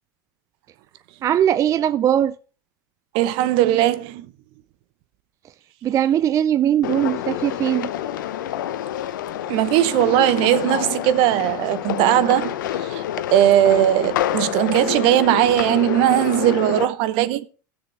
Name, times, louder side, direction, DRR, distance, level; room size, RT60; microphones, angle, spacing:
voice 1, 1.2-2.4 5.8-7.9, right 10 dB, 30° right, 0.4 m, -20 dB
voice 2, 3.1-4.3 9.5-13.0 13.3-17.5, right 13 dB, 60° right, 0.9 m, -19 dB
sound 1, 6.8-16.9, left 12 dB, 80° left, 0.7 m, -27 dB
16.5 x 6.6 x 3.3 m
hypercardioid pair, 100°, 10 cm